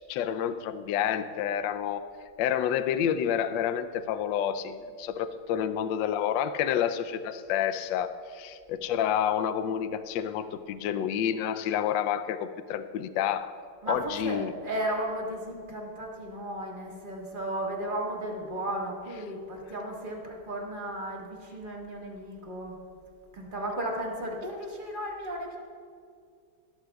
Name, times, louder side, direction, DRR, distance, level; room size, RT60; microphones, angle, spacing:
voice 1, 0.0-2.0 2.4-13.5 13.9-14.5, left 9 dB, 70° left, 11 dB, 1.2 m, -29 dB
voice 2, 13.8-14.4 14.6-22.8 23.3-25.6, right 1 dB, 25° right, -1 dB, 1.7 m, -34 dB
19.5 x 13.0 x 2.3 m, 2.2 s
omnidirectional pair, 2.3 m